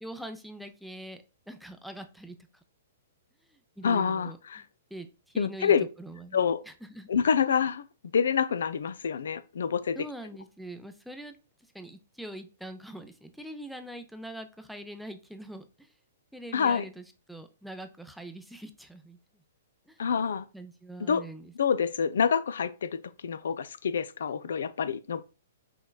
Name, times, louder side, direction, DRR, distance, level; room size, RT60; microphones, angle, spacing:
voice 1, 0.0-2.3 3.8-4.6 4.9-5.1 5.3-7.1 10.0-11.4 11.7-15.9 16.3-19.2 19.9-20.0 20.5-21.5, right 1 dB, ahead, 0.5 m, -43 dB
voice 2, 3.8-4.6 5.4-5.8 6.3-6.6 7.1-7.8 8.1-10.0 16.5-16.8 20.0-20.5 21.0-21.2 21.6-25.2, left 7 dB, 60° left, 0.3 m, -27 dB
5.5 x 3.0 x 2.2 m
figure-of-eight pair, 115°, 0 cm